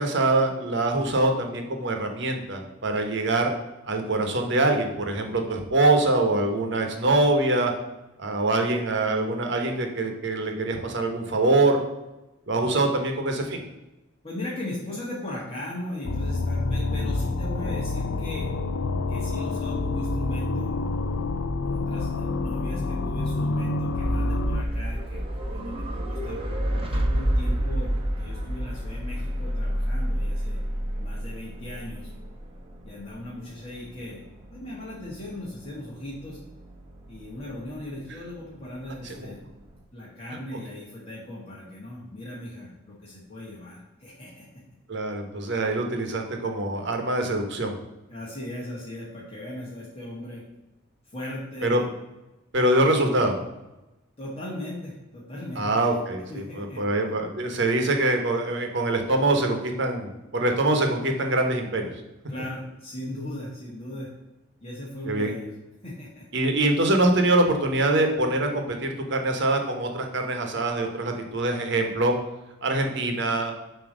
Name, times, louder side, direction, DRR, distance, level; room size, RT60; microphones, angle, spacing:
voice 1, 0.0-3.5 3.8-7.7 8.2-11.8 12.5-13.6 39.0-39.2 44.9-47.8 51.6-51.8 52.5-53.4 55.6-61.9 65.1-65.3 66.3-72.1 72.6-73.5, right 2 dB, 65° right, 4 dB, 1.1 m, -24 dB
voice 2, 14.2-18.5 19.1-20.7 21.6-25.2 25.5-26.4 26.8-30.6 31.0-32.1 32.8-34.2 34.5-36.4 37.1-39.4 39.9-44.4 48.1-50.4 51.1-51.9 54.2-55.9 56.3-56.8 62.3-64.1 64.6-65.5 65.8-66.2, left 1 dB, 30° left, -7 dB, 1.5 m, -38 dB
sound 1, 16.0-24.6, left 3 dB, 85° left, 0.5 m, -28 dB
sound 2, 23.9-39.8, equal, 30° right, 1.0 m, -30 dB
7.4 x 3.0 x 6.1 m, 0.97 s
head